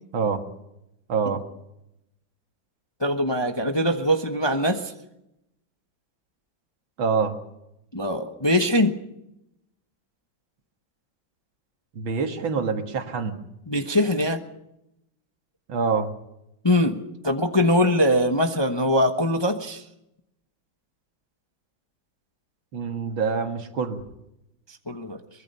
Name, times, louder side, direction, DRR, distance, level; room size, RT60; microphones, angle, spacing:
voice 1, 1.1-1.4 7.0-7.4 11.9-13.4 15.7-16.1 22.7-24.0, right 5 dB, 80° right, 6 dB, 2.5 m, -25 dB
voice 2, 3.0-4.9 7.9-9.0 13.7-14.4 16.6-19.8 24.9-25.2, left 1 dB, 20° left, 5 dB, 0.8 m, -22 dB
23.5 x 20.5 x 5.6 m, 0.86 s
omnidirectional pair, 2.1 m